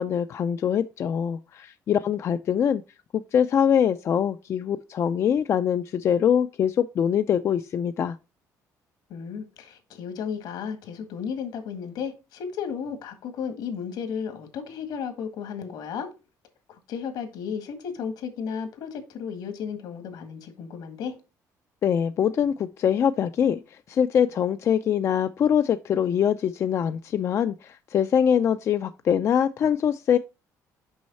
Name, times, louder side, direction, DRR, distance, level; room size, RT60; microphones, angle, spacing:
voice 1, 0.0-2.8 3.1-8.2 21.8-23.6 23.9-30.2, left 8 dB, 45° left, 0.4 m, -23 dB
voice 2, 9.1-16.1 16.7-21.1, left 7 dB, 80° left, 1.7 m, -34 dB
6.3 x 5.5 x 4.1 m
cardioid pair, 140°, 7 cm